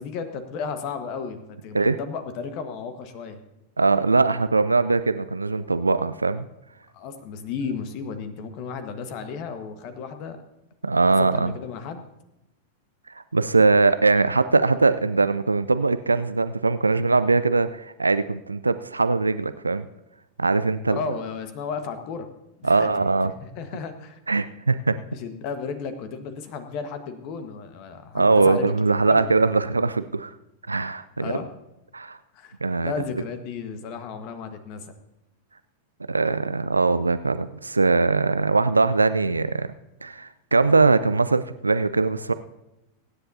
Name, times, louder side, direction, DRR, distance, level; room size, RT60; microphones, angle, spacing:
voice 1, 0.0-3.4 6.9-10.4 11.2-12.0 20.9-22.3 22.6-23.1 23.4-24.2 25.1-28.7 29.1-29.3 31.2-31.5 32.3-32.6 32.8-34.9, left 5 dB, 45° left, 9 dB, 1.4 m, -34 dB
voice 2, 3.8-6.4 10.8-11.5 13.1-19.9 20.4-21.0 22.6-23.3 24.3-25.0 28.1-30.3 30.7-31.3 31.9-32.2 32.6-32.9 36.1-39.7 40.0-42.3, right 3 dB, 80° right, 13 dB, 0.4 m, -21 dB
24.0 x 9.8 x 2.7 m, 0.94 s
figure-of-eight pair, 90°, 0 cm